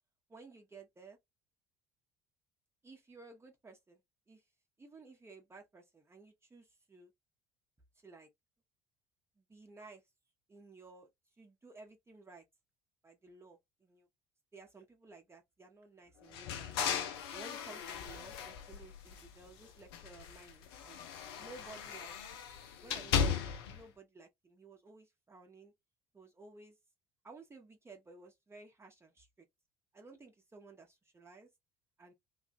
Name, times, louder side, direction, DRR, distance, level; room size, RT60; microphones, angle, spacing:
voice 1, 0.3-1.2 2.8-4.0 4.3-4.4 4.8-7.1 8.0-8.3 9.4-10.0 10.5-11.1 11.4-12.4 13.0-14.1 14.5-16.7 17.3-21.0 21.4-22.4 22.8-25.7 26.1-26.8 27.2-29.5 29.9-31.5 32.0-32.1, right 3 dB, 20° right, 1.1 m, -55 dB
sound 1, 16.3-19.5 19.9-23.8, left 7 dB, 65° left, 0.6 m, -37 dB
3.2 x 2.5 x 2.6 m
figure-of-eight pair, 55°, 14 cm